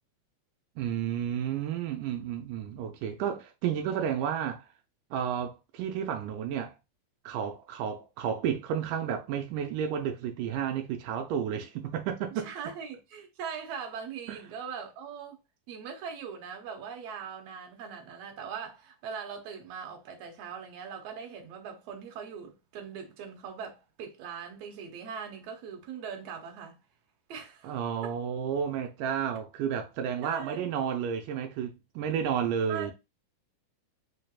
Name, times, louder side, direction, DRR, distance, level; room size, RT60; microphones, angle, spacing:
voice 1, 0.8-4.7 5.1-6.7 7.3-12.5 14.3-14.4 27.6-32.9, right 8 dB, 85° right, 2.1 m, -31 dB
voice 2, 12.4-15.4 15.7-26.8 27.3-27.8 28.0-28.1 30.2-30.6 32.7-32.9, right 7 dB, 65° right, 1.9 m, -40 dB
4.7 x 3.3 x 2.3 m
omnidirectional pair, 3.6 m